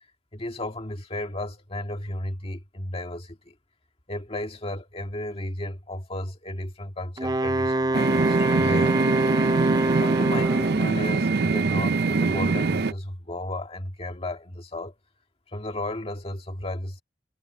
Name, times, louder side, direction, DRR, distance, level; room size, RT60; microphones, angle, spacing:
voice 1, 0.3-3.5 4.1-9.2 10.0-14.9 15.5-17.0, left 1 dB, 35° left, 1.9 m, -34 dB
Wind instrument woodwind instrument, 7.2-10.9, right 1 dB, 20° right, 0.7 m, -24 dB
sound 1, 7.9-12.9, right 4 dB, 65° right, 0.6 m, -24 dB
head